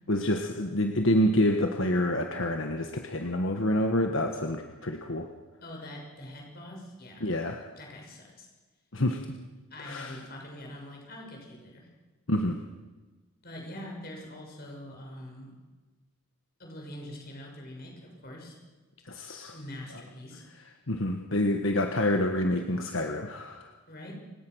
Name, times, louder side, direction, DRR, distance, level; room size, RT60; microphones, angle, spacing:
voice 1, 0.1-5.3 7.2-7.6 8.9-9.2 9.8-10.2 12.3-12.6 19.0-19.5 20.9-23.7, left 1 dB, 65° left, 4 dB, 1.3 m, -27 dB
voice 2, 5.6-7.3 7.8-8.5 9.7-11.9 13.4-15.5 16.6-18.6 19.5-20.5 23.9-24.1, left 1 dB, 45° left, 0 dB, 6.5 m, -44 dB
29.0 x 17.0 x 6.3 m, 1.3 s
head